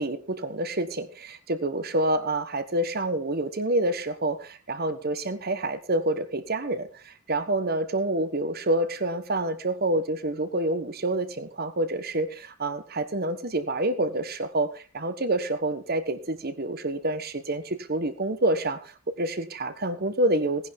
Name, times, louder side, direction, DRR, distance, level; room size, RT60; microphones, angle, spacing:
voice 1, 0.0-20.7, right 1 dB, 45° right, 11 dB, 1.3 m, -28 dB
18.0 x 10.5 x 3.7 m, 0.36 s
head